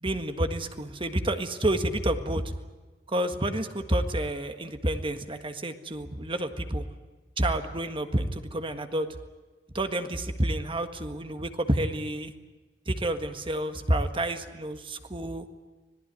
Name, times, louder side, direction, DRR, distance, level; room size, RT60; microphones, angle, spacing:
voice 1, 0.0-2.5 3.1-6.9 7.4-9.1 9.7-12.3 12.9-15.5, right 1 dB, 30° right, 8 dB, 1.6 m, -29 dB
26.0 x 18.5 x 9.4 m, 1.2 s
head